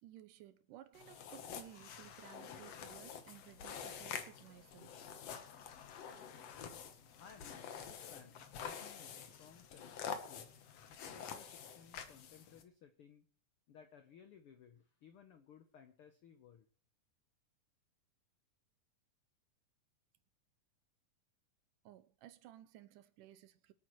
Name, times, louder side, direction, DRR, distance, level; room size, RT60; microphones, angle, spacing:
voice 1, 0.0-5.0 21.8-23.7, right 13 dB, 80° right, 2.3 m, -57 dB
sound 1, 0.9-12.6, left 7 dB, 60° left, 1.9 m, -48 dB
voice 2, 7.0-10.6 10.9-13.3 13.7-16.7, left 7 dB, 90° left, 1.2 m, -60 dB
24.5 x 8.9 x 3.1 m
omnidirectional pair, 3.9 m